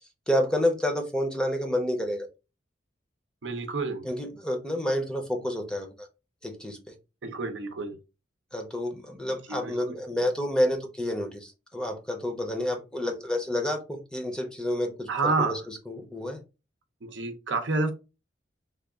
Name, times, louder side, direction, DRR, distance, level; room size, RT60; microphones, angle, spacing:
voice 1, 0.3-2.3 4.0-6.1 6.4-6.9 8.5-15.6 15.9-16.4, left 1 dB, 5° left, 4 dB, 0.6 m, -29 dB
voice 2, 3.4-4.4 7.2-8.0 9.5-10.0 15.1-15.7 17.0-17.9, right 3 dB, 75° right, 6 dB, 0.7 m, -29 dB
3.4 x 2.3 x 3.6 m, 0.29 s
head